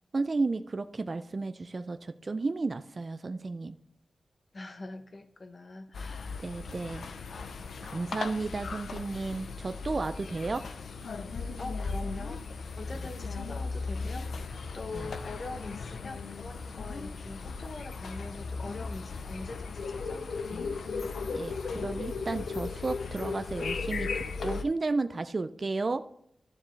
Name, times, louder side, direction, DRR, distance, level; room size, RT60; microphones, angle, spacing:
voice 1, 0.1-3.8 6.4-7.1 7.8-10.6 14.9-15.1 21.3-26.0, right 3 dB, 40° right, 10 dB, 0.4 m, -33 dB
voice 2, 4.5-6.5 11.6-12.5 12.8-20.7, left 2 dB, 40° left, 8 dB, 1.0 m, -43 dB
sound 1, 5.9-24.6, left 4 dB, 85° left, 0.6 m, -37 dB
12.5 x 7.3 x 3.2 m, 0.76 s
wide cardioid pair, 110°, 0 cm